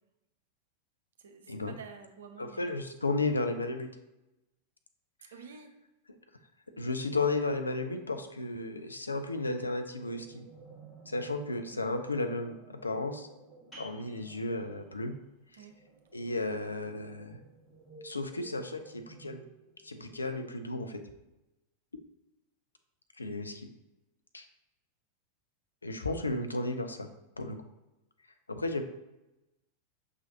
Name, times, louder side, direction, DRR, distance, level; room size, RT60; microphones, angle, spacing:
voice 1, 1.2-2.8 5.3-5.7 11.7-11.9 15.6-15.7, right 6 dB, 60° right, 6 dB, 0.6 m, -49 dB
voice 2, 2.4-3.9 6.8-10.5 11.1-13.3 13.8-15.1 15.5-15.6 16.1-17.4 18.0-19.4 19.8-21.0 23.2-23.7 24.3-24.5 25.8-27.1 27.4-27.6 28.5-28.8, left 2 dB, 80° left, 7 dB, 0.4 m, -34 dB
sound 1, 9.6-21.0, right 4 dB, 15° right, 0.9 m, -56 dB
sound 2, 13.7-19.1, equal, 10° left, 1.7 m, -59 dB
6.0 x 3.2 x 2.8 m, 0.97 s
figure-of-eight pair, 90°, 0 cm